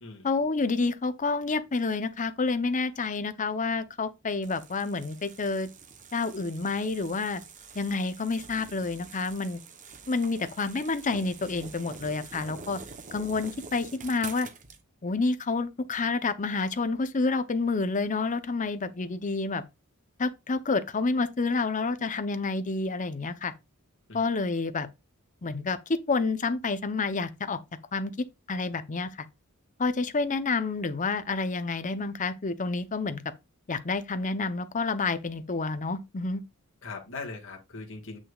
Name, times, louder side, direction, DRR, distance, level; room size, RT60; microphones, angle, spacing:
voice 1, 0.2-5.7 6.1-7.4 7.7-9.6 10.1-12.8 13.1-14.5 15.0-19.6 20.2-23.5 24.1-24.9 25.4-27.6 27.9-29.1 29.8-33.2 33.7-36.4, left 3 dB, 35° left, 0.7 m, -29 dB
sound 1, 4.4-14.8, right 5 dB, 35° right, 0.9 m, -46 dB
voice 2, 36.8-38.2, left 3 dB, 60° left, 1.9 m, -40 dB
8.1 x 6.1 x 2.4 m
head